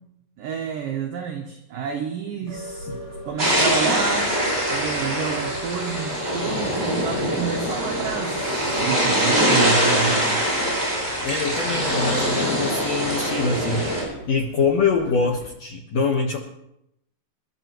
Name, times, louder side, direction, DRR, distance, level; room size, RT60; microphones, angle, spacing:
voice 1, 0.4-2.9 3.3-4.3 4.7-10.4, right 7 dB, 75° right, 3 dB, 2.0 m, -29 dB
sound 1, 2.5-15.5, equal, 35° left, 7.6 m, -37 dB
sound 2, 3.4-14.0, equal, 5° right, 6.5 m, -23 dB
voice 2, 11.2-16.4, left 5 dB, 80° left, 0 dB, 1.5 m, -24 dB
27.0 x 12.5 x 3.1 m, 0.81 s
omnidirectional pair, 5.4 m